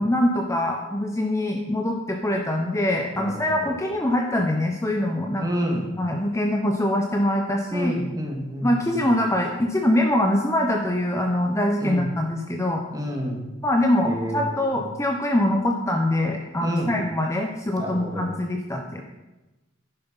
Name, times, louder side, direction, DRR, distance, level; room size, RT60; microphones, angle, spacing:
voice 1, 0.0-5.5 6.0-7.9 8.6-12.8 13.6-19.0, left 1 dB, 15° left, 2 dB, 0.9 m, -23 dB
voice 2, 5.4-5.9 7.7-9.0 11.8-12.0 12.9-13.4 14.1-14.5 16.6-16.9 17.8-18.3, equal, 20° right, 0 dB, 2.3 m, -28 dB
11.0 x 10.0 x 5.4 m, 1.1 s
head